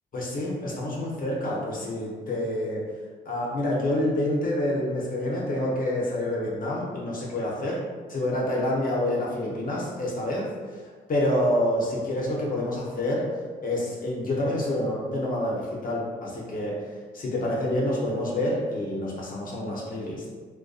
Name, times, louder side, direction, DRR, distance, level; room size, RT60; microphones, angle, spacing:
voice 1, 0.1-2.9 3.3-7.8 8.1-10.8 11.1-13.3 13.6-16.8 17.1-20.2, left 1 dB, 45° left, -4 dB, 0.6 m, -27 dB
2.5 x 2.2 x 2.3 m, 1.5 s
cardioid pair, 90°, 20 cm